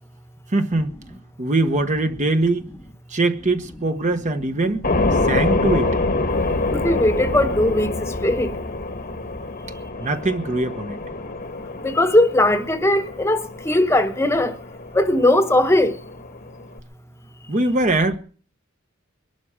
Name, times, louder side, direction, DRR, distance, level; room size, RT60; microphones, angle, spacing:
voice 1, 0.5-0.9 1.4-2.7 3.1-4.8 5.2-6.0 10.0-11.0 17.5-18.2, right 2 dB, 35° right, 1.1 m, -22 dB
sound 1, 4.8-16.8, left 2 dB, 45° left, 1.2 m, -26 dB
voice 2, 6.7-7.9 8.2-8.5 11.8-14.5 14.9-15.9, left 1 dB, 15° left, 1.1 m, -18 dB
22.5 x 12.0 x 4.9 m
head